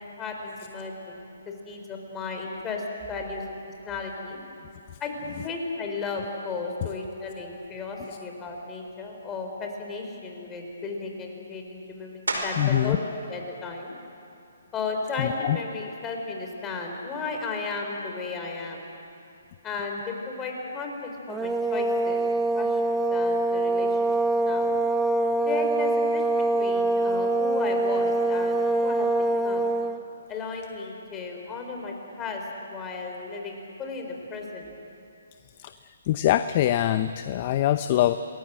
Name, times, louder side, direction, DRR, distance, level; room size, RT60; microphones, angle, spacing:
voice 1, 0.0-3.6 3.9-4.4 5.0-13.9 14.7-18.9 19.6-22.2 22.5-24.0 24.4-24.7 25.5-26.2 26.5-29.1 29.4-29.7 30.3-34.7, left 4 dB, 15° left, 2 dB, 4.2 m, -34 dB
sound 1, 12.3-12.9 13.4-17.8 18.4-23.5 23.8-29.5, right 2 dB, 85° right, 5.1 m, -42 dB
voice 2, 12.6-13.0 15.2-15.6 35.6-35.7 36.1-38.2, left 12 dB, 40° left, 11 dB, 0.7 m, -23 dB
sound 2, 21.3-30.0, right 2 dB, 10° right, 1.2 m, -24 dB
28.0 x 20.5 x 7.7 m, 2.7 s
hypercardioid pair, 140°, 0 cm